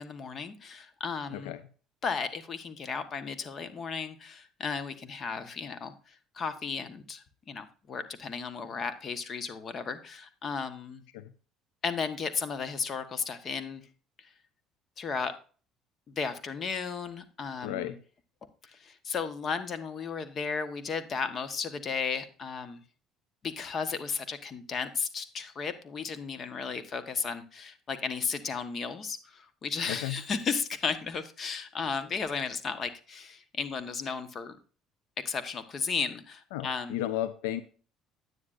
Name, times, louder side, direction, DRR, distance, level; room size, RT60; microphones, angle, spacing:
voice 1, 0.0-1.5 2.0-11.0 11.8-13.8 14.2-14.3 15.0-15.3 16.1-17.9 18.6-22.8 23.4-34.6 35.2-37.0, left 5 dB, 45° left, 11 dB, 1.2 m, -34 dB
voice 2, 1.3-1.6 11.1-11.3 17.6-18.0 29.9-30.2 36.5-37.6, left 13 dB, 85° left, 14 dB, 0.5 m, -34 dB
9.7 x 9.6 x 2.5 m, 0.38 s
supercardioid pair, 75°, 0 cm